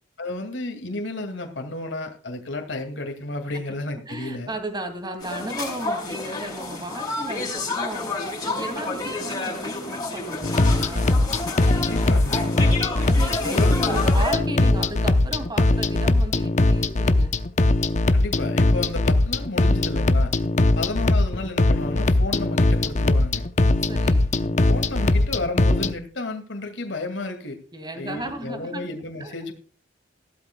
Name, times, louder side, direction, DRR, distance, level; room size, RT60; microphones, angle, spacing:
voice 1, 0.2-4.5 11.7-12.4 13.4-13.9 18.1-20.3 20.7-23.4 24.7-27.6 28.0-29.5, left 2 dB, 65° left, 5 dB, 2.3 m, -32 dB
voice 2, 4.1-11.2 12.1-17.4 23.9-24.2 27.7-28.8 29.2-29.3, right 1 dB, 20° right, 7 dB, 2.4 m, -35 dB
sound 1, 5.2-14.3, left 2 dB, 20° left, 4.7 m, -30 dB
sound 2, 10.4-25.9, left 2 dB, 40° left, 0.7 m, -20 dB
15.5 x 12.5 x 2.3 m, 0.40 s
head